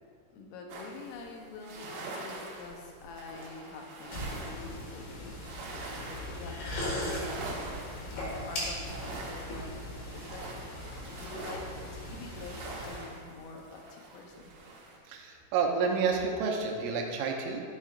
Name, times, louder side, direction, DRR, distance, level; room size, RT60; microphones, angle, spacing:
voice 1, 0.3-7.8 8.2-9.7 10.1-10.5 11.0-11.6 11.9-14.5, left 4 dB, 80° left, 1 dB, 3.3 m, -46 dB
sound 1, 0.7-15.0, right 2 dB, 70° right, 3.3 m, -44 dB
sound 2, 4.1-13.0, left 1 dB, 60° left, 3.3 m, -39 dB
voice 2, 15.1-17.6, right 5 dB, 90° right, 1 dB, 3.4 m, -29 dB
11.5 x 7.4 x 2.5 m, 2.1 s
omnidirectional pair, 5.8 m